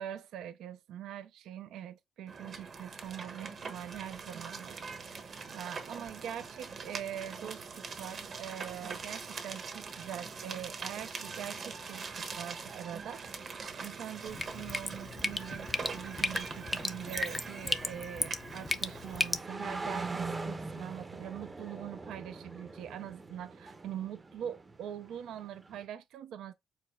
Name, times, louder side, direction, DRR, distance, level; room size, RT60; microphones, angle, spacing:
voice 1, 0.0-4.8 5.5-13.2 13.8-26.5, right 10 dB, 80° right, 0.5 m, -43 dB
sound 1, 2.3-19.5, right 5 dB, 50° right, 0.9 m, -43 dB
Drip, 14.3-19.4, left 3 dB, 20° left, 0.5 m, -35 dB
sound 2, 15.1-25.8, right 3 dB, 25° right, 0.6 m, -43 dB
4.9 x 4.0 x 2.3 m
cardioid pair, 90°, 0 cm